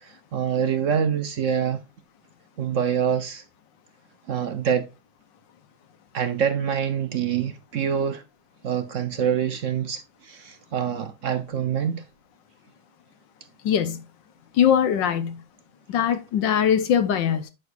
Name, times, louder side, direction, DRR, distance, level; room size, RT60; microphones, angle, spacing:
voice 1, 0.0-1.8 2.6-3.4 4.3-4.9 6.1-8.2 8.6-12.0, right 8 dB, 60° right, 0.8 m, -25 dB
voice 2, 13.6-14.0 14.5-15.4 15.9-17.5, left 8 dB, 75° left, 1.6 m, -21 dB
9.4 x 6.3 x 2.5 m
omnidirectional pair, 2.0 m